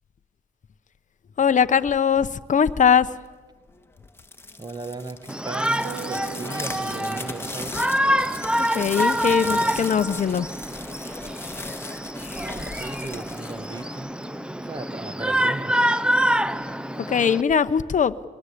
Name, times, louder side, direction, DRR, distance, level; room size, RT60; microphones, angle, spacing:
voice 1, 1.4-3.2 8.7-10.5 17.0-18.2, left 7 dB, 40° left, 11 dB, 0.9 m, -21 dB
sound 1, 4.0-14.4, left 2 dB, 10° left, 1.8 m, -37 dB
voice 2, 4.6-7.9 12.3-14.1 14.6-15.8, right 3 dB, 20° right, 13 dB, 1.3 m, -36 dB
Shout, 5.3-17.4, equal, 5° right, 0.7 m, -26 dB
sound 2, 5.8-11.6, right 11 dB, 90° right, 1.4 m, -44 dB
24.5 x 20.0 x 8.5 m, 1.3 s
cardioid pair, 90°, 20 cm